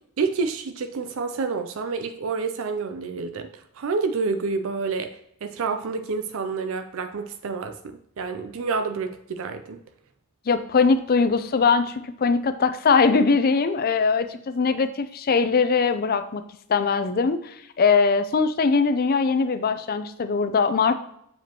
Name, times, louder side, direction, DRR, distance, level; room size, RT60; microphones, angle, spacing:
voice 1, 0.2-9.8, right 4 dB, 65° right, 7 dB, 0.5 m, -29 dB
voice 2, 10.5-16.4 16.7-20.9, left 5 dB, 45° left, 11 dB, 0.5 m, -21 dB
7.1 x 5.0 x 2.9 m, 0.73 s
head